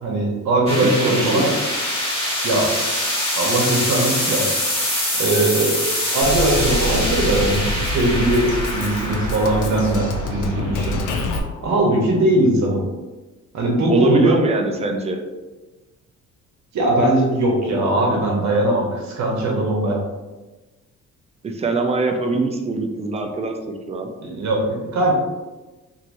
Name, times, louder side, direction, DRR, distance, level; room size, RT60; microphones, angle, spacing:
voice 1, 0.0-1.5 2.4-2.7 3.4-4.4 5.2-5.8 6.1-11.0 11.6-12.8 13.5-14.4 16.7-20.0 24.2-25.1, right 1 dB, 65° right, -1 dB, 1.0 m, -20 dB
sound 1, 0.7-11.8, left 1 dB, 20° left, 1.2 m, -25 dB
voice 2, 0.8-1.5 13.9-15.2 21.4-23.5 23.9-24.1, right 3 dB, 20° right, 3 dB, 0.4 m, -22 dB
Drum kit, 6.2-11.4, left 1 dB, 75° left, 0.5 m, -26 dB
3.0 x 2.7 x 2.6 m, 1.2 s
cardioid pair, 90°, 30 cm